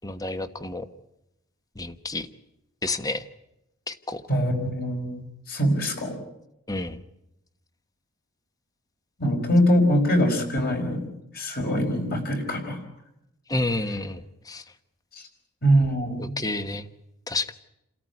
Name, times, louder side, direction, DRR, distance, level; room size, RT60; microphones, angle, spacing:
voice 1, 0.0-0.9 1.8-2.3 2.8-3.2 3.9-4.2 6.7-7.0 13.5-14.6 16.2-16.9 17.3-17.5, left 2 dB, 15° left, 11 dB, 1.1 m, -30 dB
voice 2, 4.3-6.2 9.2-11.1 11.3-12.8 15.1-15.2 15.6-16.3, equal, 40° left, 3 dB, 5.0 m, -23 dB
29.0 x 13.5 x 9.7 m, 0.86 s
head